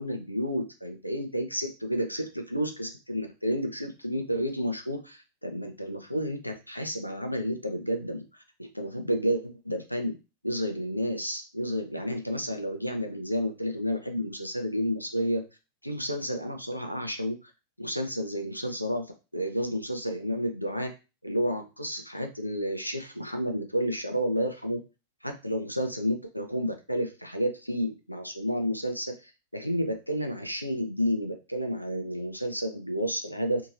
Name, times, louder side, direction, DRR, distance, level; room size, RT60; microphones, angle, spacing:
voice 1, 0.0-8.2 8.6-10.2 10.4-15.4 15.8-17.5 17.8-20.9 21.2-24.8 25.2-29.1 29.5-33.6, equal, 90° left, 5 dB, 0.5 m, -31 dB
2.8 x 2.7 x 2.5 m, 0.29 s
figure-of-eight pair, 90°, 0 cm